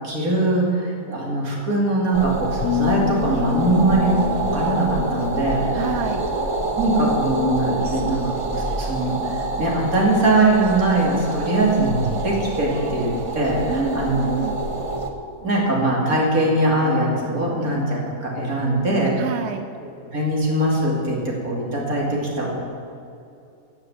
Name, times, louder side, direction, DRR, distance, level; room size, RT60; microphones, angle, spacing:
voice 1, 0.0-5.9 6.3-8.2 8.4-9.1 9.6-14.3 15.4-19.2 20.1-22.5, right 2 dB, 70° right, -3 dB, 3.2 m, -21 dB
sound 1, 2.1-15.1, right 2 dB, 25° right, 0.9 m, -27 dB
sound 2, 2.6-5.8, left 18 dB, 70° left, 0.9 m, -28 dB
voice 2, 5.7-6.3 13.7-14.6 19.2-19.7, right 5 dB, 55° right, 7 dB, 0.9 m, -28 dB
13.5 x 7.7 x 7.7 m, 2.6 s
omnidirectional pair, 1.6 m